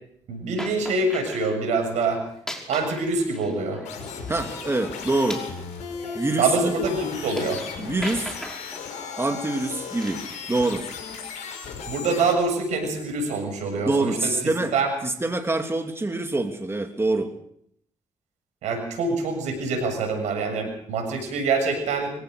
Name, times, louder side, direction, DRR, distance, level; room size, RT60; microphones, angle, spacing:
voice 1, 0.3-2.2 2.7-3.8 6.4-7.6 11.9-14.9 18.6-22.1, right 3 dB, 80° right, 6 dB, 6.9 m, -25 dB
sound 1, 0.6-1.6 2.3-4.3 4.7-7.7 8.0-8.9 10.0-10.5, equal, 5° left, 5.6 m, -39 dB
sound 2, 3.8-12.3, left 5 dB, 80° left, 5.8 m, -36 dB
voice 2, 4.3-5.4 6.1-6.7 7.8-8.4 9.1-10.9 13.7-14.7 15.0-17.3, right 2 dB, 20° right, 5 dB, 3.0 m, -25 dB
24.5 x 17.0 x 6.6 m, 0.68 s
supercardioid pair, 55°, 12 cm